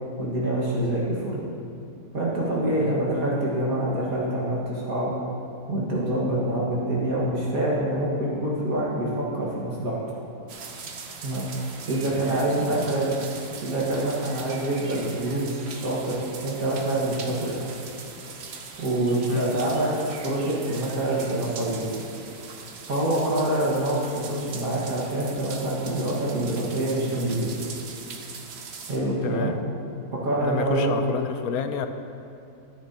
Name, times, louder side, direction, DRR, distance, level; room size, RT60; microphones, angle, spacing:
voice 1, 0.2-1.4 2.1-5.2 5.7-10.0 11.2-11.5 11.9-13.1 13.6-15.4 15.7-17.7 18.8-21.9 22.9-27.5 28.9-29.5 30.1-30.9, right 1 dB, 70° right, -6 dB, 2.2 m, -26 dB
sound 1, 10.5-29.0, right 5 dB, 55° right, 0.9 m, -41 dB
voice 2, 12.1-12.9 19.3-19.5 29.2-29.5 30.4-31.9, left 8 dB, 80° left, 8 dB, 1.1 m, -30 dB
13.5 x 8.9 x 2.9 m, 2.6 s
omnidirectional pair, 1.6 m